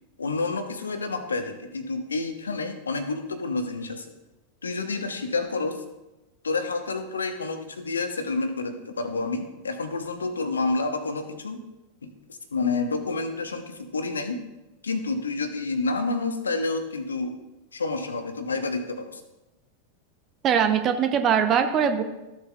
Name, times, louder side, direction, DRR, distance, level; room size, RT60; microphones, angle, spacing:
voice 1, 0.2-4.1 4.6-5.8 6.4-11.6 12.0-12.1 12.5-14.4 14.8-17.3 17.7-19.2, left 3 dB, 75° left, 8 dB, 1.0 m, -29 dB
voice 2, 20.4-22.0, right 7 dB, 30° right, 8 dB, 0.7 m, -21 dB
14.0 x 7.4 x 2.4 m, 1.0 s
figure-of-eight pair, 90°, 0 cm